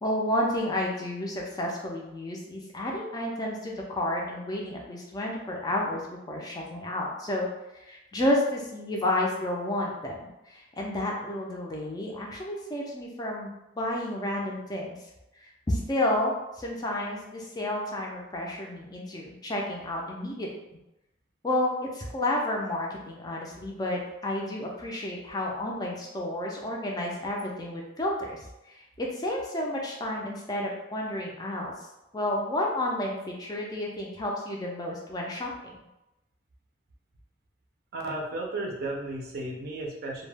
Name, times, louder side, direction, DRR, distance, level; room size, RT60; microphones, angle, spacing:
voice 1, 0.0-7.5 7.8-15.0 15.4-20.5 21.4-31.7 32.1-35.5, left 1 dB, 20° left, -2 dB, 0.4 m, -31 dB
voice 2, 37.9-40.3, right 2 dB, 55° right, -1 dB, 0.5 m, -34 dB
2.2 x 2.0 x 3.2 m, 0.93 s
head